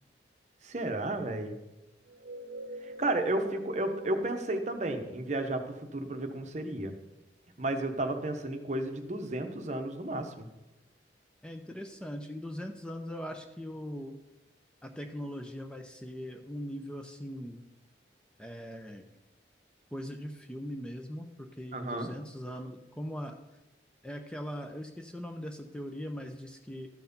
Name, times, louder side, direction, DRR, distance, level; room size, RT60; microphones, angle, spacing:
voice 1, 0.6-1.5 2.8-6.9 7.6-10.5 21.7-22.1, right 2 dB, 40° right, 6 dB, 0.9 m, -32 dB
sound 1, 2.0-6.6, equal, 85° right, 0.5 m, -46 dB
voice 2, 11.4-14.2 14.8-17.6 18.4-19.0 19.9-23.4 24.0-26.9, equal, 5° left, 4 dB, 0.6 m, -40 dB
13.0 x 4.6 x 5.4 m, 0.99 s
head